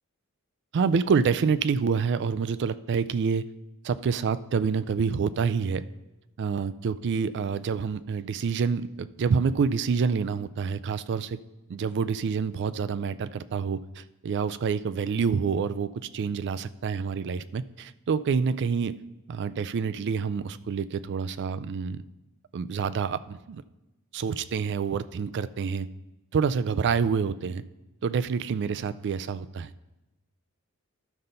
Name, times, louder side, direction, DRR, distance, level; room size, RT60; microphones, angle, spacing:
voice 1, 0.7-3.5 3.8-5.8 6.4-11.4 11.7-19.0 19.3-22.0 22.5-23.6 24.1-25.9 26.3-27.6 28.0-29.7, right 5 dB, 55° right, 15 dB, 0.3 m, -27 dB
12.5 x 5.5 x 3.9 m, 1.0 s
head